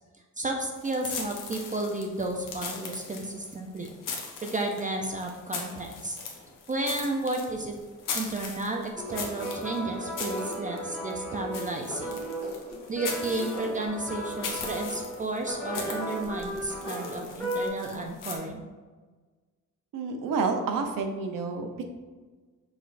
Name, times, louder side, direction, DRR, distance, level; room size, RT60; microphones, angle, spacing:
voice 1, 0.4-3.9 4.4-6.2 6.7-7.8 8.1-12.2 12.9-18.6, right 2 dB, 25° right, 2 dB, 0.3 m, -32 dB
sound 1, 0.8-18.4, left 5 dB, 75° left, 0.9 m, -40 dB
sound 2, 9.0-17.7, right 1 dB, 5° left, 1.4 m, -35 dB
voice 2, 19.9-21.9, right 4 dB, 85° right, 5 dB, 0.7 m, -29 dB
6.1 x 3.2 x 2.5 m, 1.4 s
wide cardioid pair, 155°, 32 cm